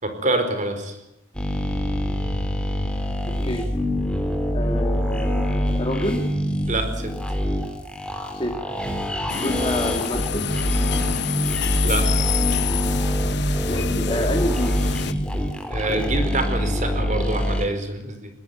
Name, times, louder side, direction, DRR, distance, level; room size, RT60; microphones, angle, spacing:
voice 1, 0.0-1.0 6.7-7.1 11.8-12.1 15.7-18.3, right 2 dB, 40° right, 8 dB, 4.5 m, -26 dB
sound 1, 1.3-17.7, equal, 5° left, 3.3 m, -24 dB
voice 2, 4.5-6.2 8.4-8.5 9.3-10.5 13.7-14.7, left 1 dB, 30° left, 2 dB, 2.5 m, -27 dB
sound 2, 9.3-15.1, left 9 dB, 60° left, 1.1 m, -28 dB
21.5 x 19.5 x 9.5 m, 0.90 s
head